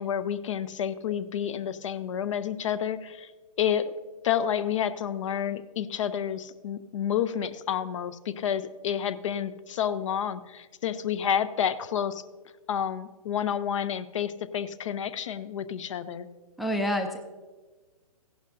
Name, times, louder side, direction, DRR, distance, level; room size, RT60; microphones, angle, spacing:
voice 1, 0.0-3.3 3.6-3.9 4.2-12.2 12.7-16.3, left 9 dB, 55° left, 15 dB, 0.6 m, -29 dB
voice 2, 16.6-17.2, equal, ahead, 5 dB, 0.4 m, -27 dB
15.5 x 11.0 x 2.6 m, 1.3 s
hypercardioid pair, 135°, 20 cm